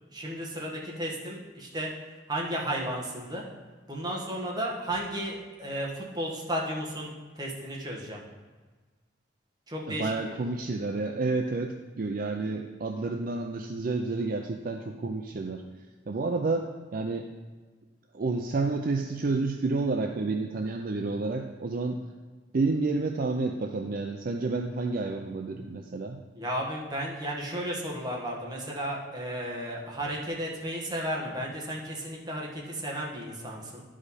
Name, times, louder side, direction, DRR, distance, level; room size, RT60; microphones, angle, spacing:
voice 1, 0.1-1.9 2.3-3.4 3.9-8.2 9.7-10.4 26.3-33.8, equal, 20° right, -3 dB, 1.4 m, -34 dB
voice 2, 9.9-15.6 16.1-17.3 18.1-22.0 22.5-26.2, right 3 dB, 50° right, 3 dB, 0.4 m, -30 dB
11.0 x 5.0 x 4.1 m, 1.4 s
head